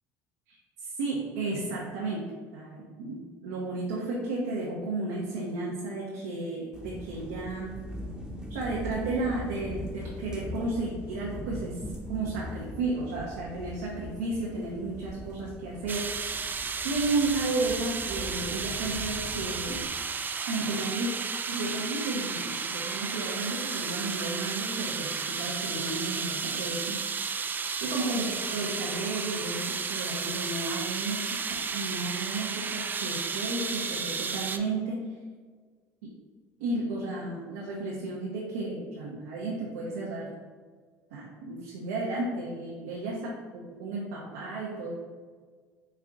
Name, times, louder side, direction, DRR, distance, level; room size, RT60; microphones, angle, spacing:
voice 1, 0.5-7.8 8.5-11.8 12.1-16.1 16.8-19.9 20.5-21.1 21.5-27.0 27.8-31.4 31.7-35.0 36.6-40.3 41.1-44.9, right 2 dB, 90° right, -4 dB, 0.7 m, -33 dB
sound 1, 6.7-20.0, equal, 10° right, 0.8 m, -41 dB
sound 2, 15.9-34.6, right 5 dB, 25° right, 0.3 m, -33 dB
4.3 x 2.4 x 3.6 m, 1.5 s
supercardioid pair, 85°, 7 cm